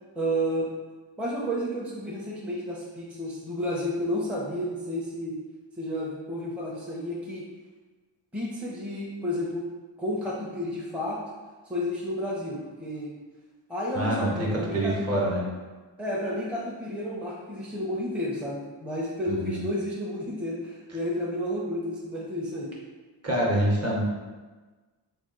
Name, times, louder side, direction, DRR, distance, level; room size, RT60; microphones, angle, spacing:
voice 1, 0.2-0.7 1.2-5.3 5.8-7.4 8.3-9.7 10.0-11.2 11.7-13.1 13.7-15.2 16.0-22.7, equal, 5° right, -5 dB, 0.6 m, -31 dB
voice 2, 13.9-15.5 19.3-19.6 23.2-24.0, right 1 dB, 30° right, -4 dB, 0.9 m, -26 dB
3.5 x 2.4 x 3.8 m, 1.3 s
wide cardioid pair, 95°, 47 cm